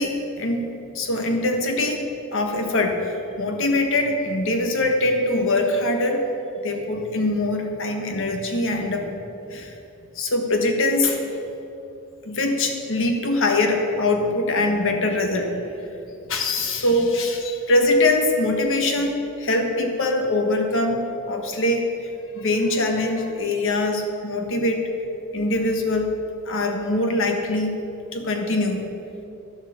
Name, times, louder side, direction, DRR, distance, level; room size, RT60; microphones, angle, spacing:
voice 1, 0.0-2.0 2.3-6.2 6.6-9.1 9.5-9.7 10.1-11.3 12.2-15.5 16.3-21.0 21.3-21.9 22.3-24.8 25.3-26.1 26.4-27.8 28.1-28.9, left 2 dB, 60° left, 4 dB, 1.4 m, -23 dB
11.0 x 7.9 x 6.9 m, 2.9 s
head